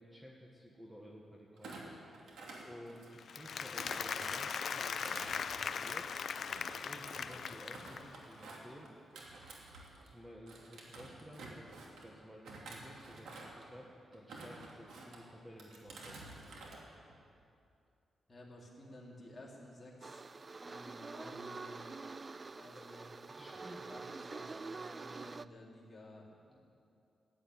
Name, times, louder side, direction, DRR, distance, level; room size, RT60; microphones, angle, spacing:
voice 1, 0.0-1.8 2.6-6.2 6.8-8.9 10.0-16.7 22.7-22.9 23.3-23.9 26.5-26.6, equal, 10° right, -2 dB, 1.4 m, -54 dB
Thump thud, 1.6-3.3 3.8-10.1 10.5-12.1 12.4-13.7 14.1-15.2 15.6-16.8 17.1-17.4, right 2 dB, 90° right, 2.5 m, -51 dB
Applause, 3.2-8.2, left 6 dB, 60° left, 0.5 m, -39 dB
voice 2, 18.3-20.2 20.6-21.9 22.5-23.1 23.5-26.6, left 1 dB, 25° left, -3 dB, 3.2 m, -54 dB
sound 1, 20.0-25.5, right 3 dB, 30° right, 0.3 m, -46 dB
15.0 x 9.3 x 9.4 m, 2.5 s
wide cardioid pair, 125°, 0 cm